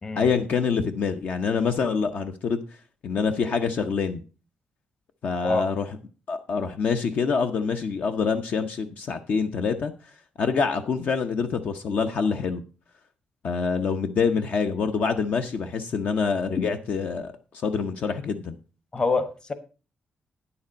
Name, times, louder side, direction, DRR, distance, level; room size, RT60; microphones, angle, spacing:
voice 1, 0.2-2.6 3.0-4.2 5.2-6.0 6.3-9.9 10.4-12.6 13.4-18.6, left 5 dB, 55° left, 0.8 m, -26 dB
voice 2, 18.9-19.5, left 3 dB, 25° left, 1.1 m, -25 dB
9.7 x 7.1 x 5.2 m
cardioid pair, 140°, 3 cm